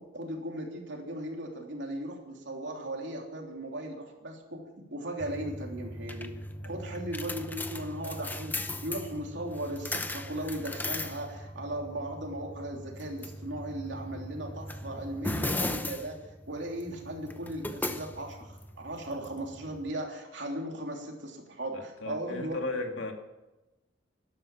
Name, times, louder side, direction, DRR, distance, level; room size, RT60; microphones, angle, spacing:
voice 1, 0.0-4.6 4.9-6.3 6.6-8.5 8.8-16.2 16.5-22.6, right 1 dB, 65° right, 1 dB, 3.3 m, -37 dB
sound 1, 5.2-19.9, left 1 dB, 10° left, 0.8 m, -38 dB
voice 2, 21.7-23.1, left 3 dB, 80° left, 3 dB, 2.5 m, -35 dB
12.5 x 12.0 x 7.4 m, 1.0 s
head